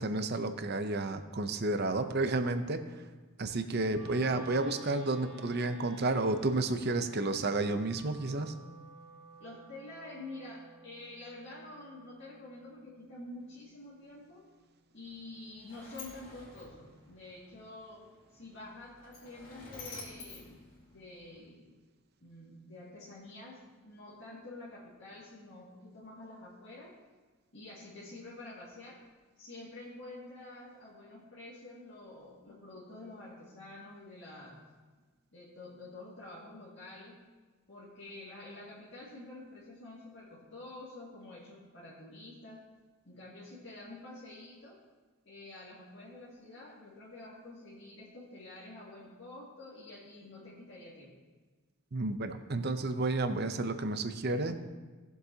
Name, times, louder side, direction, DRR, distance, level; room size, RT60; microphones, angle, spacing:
voice 1, 0.0-3.0 3.4-8.5 51.9-54.5, right 2 dB, 50° right, 8 dB, 0.7 m, -31 dB
Wind instrument woodwind instrument, 3.9-14.1, right 2 dB, 30° right, 2.4 m, -55 dB
voice 2, 9.4-14.5 14.9-18.1 18.3-21.8 22.2-26.9 27.5-29.0 29.4-34.7 35.3-37.2 37.7-42.7 43.0-44.8 45.2-51.2, left 2 dB, 55° left, -8 dB, 2.2 m, -48 dB
Sliding door, 15.0-21.4, left 3 dB, 40° left, 3.4 m, -51 dB
18.0 x 7.8 x 2.8 m, 1.3 s
head